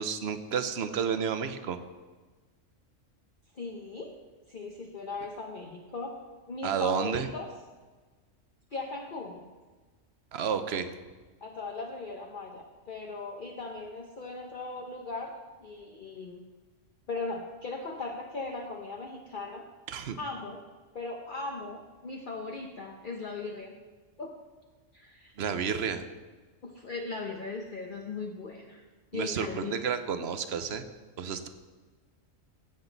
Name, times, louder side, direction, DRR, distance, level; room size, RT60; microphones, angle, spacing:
voice 1, 0.0-1.8 6.6-7.3 10.3-10.9 19.9-20.2 25.4-26.0 29.1-30.8 31.2-31.5, right 7 dB, 55° right, 10 dB, 1.0 m, -31 dB
voice 2, 3.5-4.1 4.5-6.2 6.5-7.5 8.7-9.4 11.4-16.4 17.1-19.7 20.2-20.6 20.9-23.7 24.2-24.4 24.9-25.3 26.6-28.8 29.1-29.8, left 3 dB, 45° left, 1 dB, 1.0 m, -38 dB
16.0 x 7.8 x 4.0 m, 1.3 s
omnidirectional pair, 1.4 m